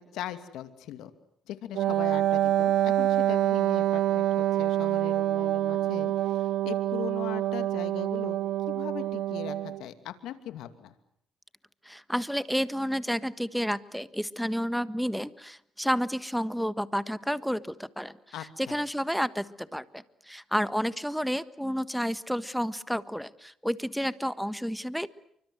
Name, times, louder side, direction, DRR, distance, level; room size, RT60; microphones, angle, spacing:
voice 1, 0.1-1.1 1.5-8.4 8.7-10.9 18.3-18.8, left 11 dB, 90° left, 10 dB, 2.6 m, -40 dB
Wind instrument woodwind instrument, 1.7-9.8, right 12 dB, 85° right, 1.1 m, -26 dB
voice 2, 11.8-18.1 18.6-25.1, equal, ahead, 14 dB, 1.5 m, -30 dB
29.0 x 24.5 x 8.0 m, 0.69 s
cardioid pair, 90°, 0 cm